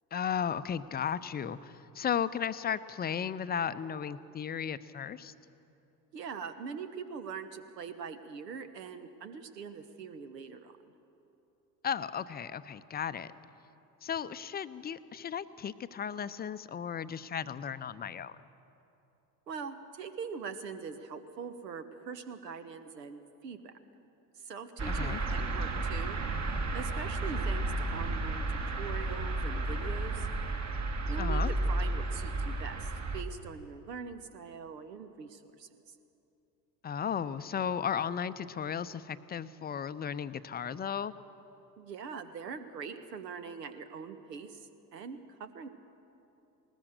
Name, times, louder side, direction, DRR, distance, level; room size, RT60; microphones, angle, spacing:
voice 1, 0.1-5.3 11.8-13.3 14.0-18.4 24.9-25.2 31.2-31.5 36.8-41.1, left 8 dB, 20° left, 14 dB, 0.6 m, -35 dB
voice 2, 6.1-10.8 19.5-23.7 24.4-26.2 26.7-30.3 31.1-35.7 41.8-45.7, right 6 dB, 80° right, 10 dB, 1.3 m, -42 dB
sound 1, 24.8-33.2, right 2 dB, 35° right, 1.8 m, -32 dB
20.0 x 19.5 x 6.6 m, 2.9 s
figure-of-eight pair, 65°, 49 cm